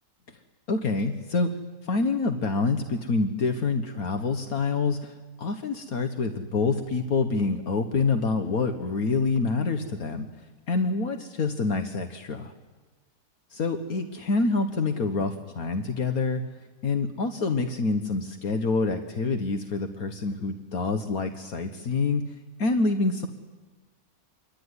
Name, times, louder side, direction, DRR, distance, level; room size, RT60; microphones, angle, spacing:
voice 1, 0.7-1.5 1.8-10.3 10.7-12.5 13.5-16.4 16.8-22.2 22.6-23.3, left 3 dB, 70° left, 7 dB, 1.8 m, -26 dB
26.5 x 22.5 x 9.8 m, 1.3 s
omnidirectional pair, 1.6 m